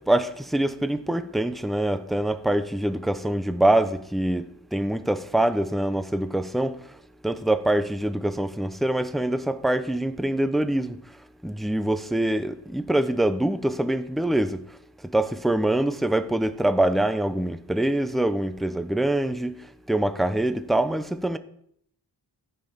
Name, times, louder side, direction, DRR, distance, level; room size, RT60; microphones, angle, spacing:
voice 1, 0.0-6.8 7.2-11.0 11.4-14.6 15.1-19.6 19.9-21.4, right 1 dB, ahead, 0.4 m, -24 dB
15.0 x 5.6 x 3.5 m
wide cardioid pair, 105°, 41 cm